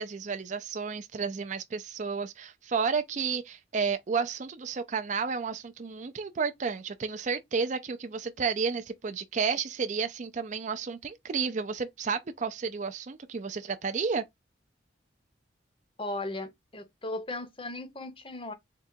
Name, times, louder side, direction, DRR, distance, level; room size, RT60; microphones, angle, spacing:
voice 1, 0.0-14.2, right 5 dB, 40° right, 0.4 m, -31 dB
voice 2, 16.0-18.5, left 2 dB, 30° left, 0.7 m, -37 dB
3.8 x 2.3 x 4.3 m
head